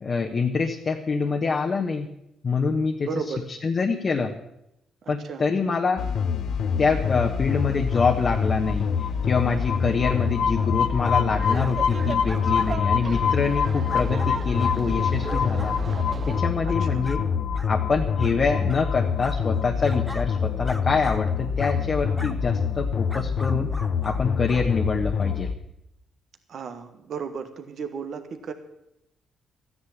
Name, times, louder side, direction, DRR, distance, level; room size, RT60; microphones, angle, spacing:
voice 1, 0.0-2.1 2.4-3.1 3.5-4.3 5.1-6.0 6.8-15.8 16.2-17.2 17.7-23.7 24.0-25.5, left 4 dB, 40° left, 2 dB, 1.2 m, -25 dB
voice 2, 3.0-3.4 5.0-5.4 16.6-17.0 18.2-18.5 26.5-28.5, right 5 dB, 60° right, 7 dB, 1.4 m, -35 dB
sound 1, 6.0-25.5, left 6 dB, 65° left, 0.8 m, -25 dB
sound 2, 11.0-11.2 11.6-11.8 12.3-12.7 13.2-13.3 13.9-14.8 15.3-15.8 16.3-16.4 17.0-17.2 17.5-17.7 18.2-18.4 18.7-18.9 19.2-20.3 20.6-21.2 21.6-21.8 22.2-22.4 23.1-24.2 24.5-24.7 25.2-25.3, equal, 5° left, 0.9 m, -40 dB
Laughter, 11.3-16.4, right 6 dB, 45° right, 0.5 m, -36 dB
13.5 x 10.0 x 7.3 m, 0.83 s
cardioid pair, 90°, 0 cm